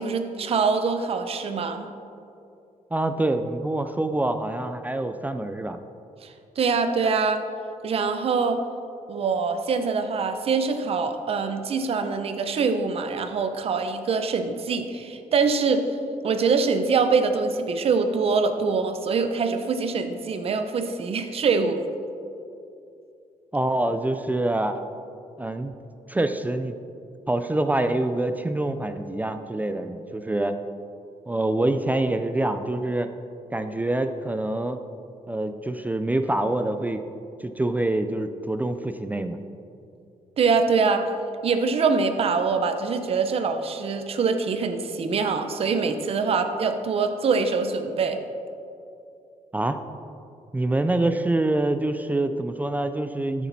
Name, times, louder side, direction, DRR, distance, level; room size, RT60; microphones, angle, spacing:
voice 1, 0.0-1.8 6.2-7.4 7.8-8.6 9.1-15.8 16.2-21.8 40.4-41.0 41.4-48.2, right 5 dB, 45° right, 7 dB, 0.8 m, -24 dB
voice 2, 2.9-5.8 23.5-24.8 25.4-25.7 26.1-26.8 27.3-30.6 31.3-33.1 33.5-34.8 35.3-37.0 37.4-39.4 49.5-49.8 50.5-53.5, right 2 dB, 10° right, 8 dB, 0.4 m, -25 dB
13.5 x 7.2 x 4.1 m, 2.6 s
cardioid pair, 145°, 14 cm